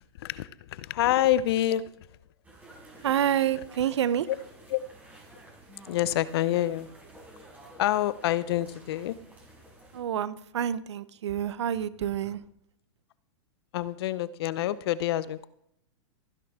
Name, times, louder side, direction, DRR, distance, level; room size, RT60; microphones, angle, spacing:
voice 1, 0.2-1.8 4.7-4.8 5.9-6.9 7.8-9.1 13.7-15.5, left 13 dB, 60° left, 17 dB, 0.7 m, -27 dB
sound 1, 2.4-10.0, right 1 dB, 10° right, 5.5 m, -51 dB
voice 2, 3.0-4.3 9.9-12.4, right 10 dB, 80° right, 15 dB, 0.8 m, -28 dB
15.0 x 10.5 x 3.7 m, 0.76 s
hypercardioid pair, 130°, 14 cm